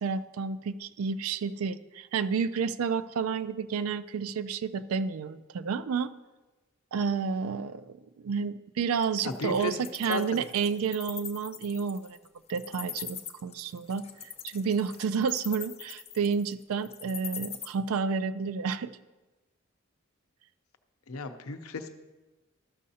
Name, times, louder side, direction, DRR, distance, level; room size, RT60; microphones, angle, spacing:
voice 1, 0.0-6.1 6.9-12.2 12.5-18.9, right 6 dB, 90° right, 14 dB, 0.4 m, -30 dB
Wild animals, 9.0-17.7, left 9 dB, 30° left, 0.5 m, -41 dB
voice 2, 9.2-9.8 10.1-10.2 21.1-21.9, left 4 dB, 90° left, 7 dB, 0.7 m, -34 dB
13.5 x 6.4 x 2.8 m, 1.1 s
head